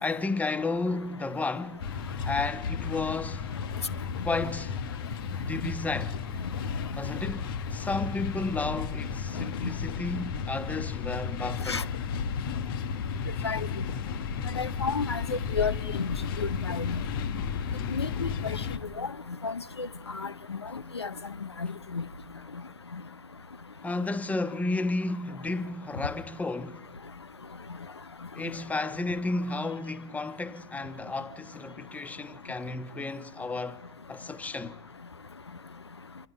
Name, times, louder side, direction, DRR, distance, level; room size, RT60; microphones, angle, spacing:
voice 1, 0.0-1.9 2.2-3.5 4.2-4.8 5.3-6.2 6.9-11.8 23.8-26.8 28.3-33.8 34.1-34.8, left 3 dB, 10° left, 1.3 m, -32 dB
sound 1, 1.8-18.8, left 6 dB, 55° left, 1.5 m, -33 dB
voice 2, 14.6-16.1 16.4-17.0 17.9-18.6 19.0-19.1 19.4-19.9 20.1-20.6 20.9-21.1 21.9-22.0, left 4 dB, 85° left, 0.8 m, -31 dB
29.0 x 24.0 x 5.5 m
figure-of-eight pair, 90°, 13 cm